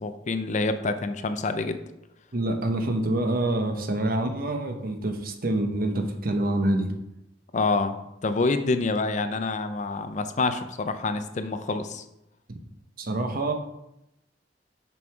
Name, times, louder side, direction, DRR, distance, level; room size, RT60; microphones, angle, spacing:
voice 1, 0.0-1.8 7.5-8.0 8.2-12.0, left 3 dB, 40° left, 9 dB, 0.5 m, -27 dB
voice 2, 2.3-6.9 12.5-12.6 13.0-13.5, right 1 dB, 55° right, 5 dB, 0.8 m, -26 dB
6.1 x 5.3 x 4.7 m, 0.86 s
head